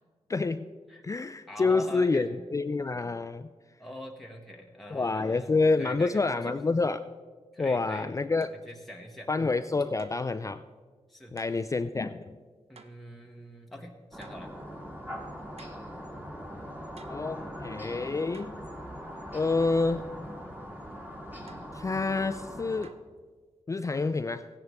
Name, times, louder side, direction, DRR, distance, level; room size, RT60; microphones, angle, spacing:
voice 1, 0.3-0.7 1.0-3.5 4.9-7.1 7.6-8.5 9.3-10.6 11.3-12.4 17.1-18.6 19.3-20.1 21.7-22.9 23.7-24.5, left 3 dB, 25° left, 10 dB, 0.4 m, -28 dB
voice 2, 1.5-2.5 3.8-5.5 5.8-6.6 7.5-8.1 8.5-9.3 11.1-11.3 12.7-14.5, left 1 dB, ahead, 0 dB, 0.9 m, -44 dB
sound 1, 8.4-8.7 10.0-10.4 11.4-11.6 12.8-13.1 14.2-14.5 15.6-15.9 17.0-17.3 18.3-18.6 21.5-21.8 22.8-23.2, right 5 dB, 60° right, 0.6 m, -54 dB
sound 2, 14.1-22.9, equal, 15° right, 1.9 m, -41 dB
15.5 x 10.5 x 3.5 m, 1.5 s
wide cardioid pair, 85°, 12 cm